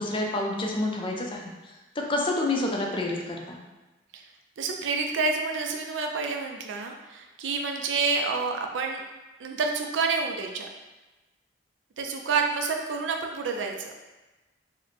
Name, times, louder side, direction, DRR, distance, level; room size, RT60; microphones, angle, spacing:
voice 1, 0.0-1.4 2.0-3.6, left 2 dB, 30° left, 0 dB, 0.5 m, -28 dB
voice 2, 4.6-9.0 9.4-10.7 12.0-13.9, right 4 dB, 75° right, 3 dB, 0.4 m, -28 dB
3.1 x 2.1 x 3.9 m, 1.1 s
head